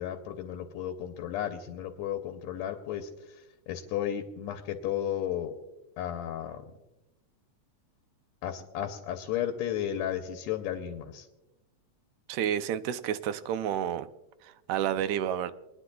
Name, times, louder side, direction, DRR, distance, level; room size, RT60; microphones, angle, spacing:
voice 1, 0.0-5.5 6.0-6.7 8.4-11.3, left 10 dB, 75° left, 5 dB, 1.9 m, -34 dB
voice 2, 12.3-14.1 14.4-15.5, right 10 dB, 80° right, 12 dB, 1.8 m, -30 dB
29.0 x 9.9 x 2.3 m, 0.99 s
omnidirectional pair, 3.4 m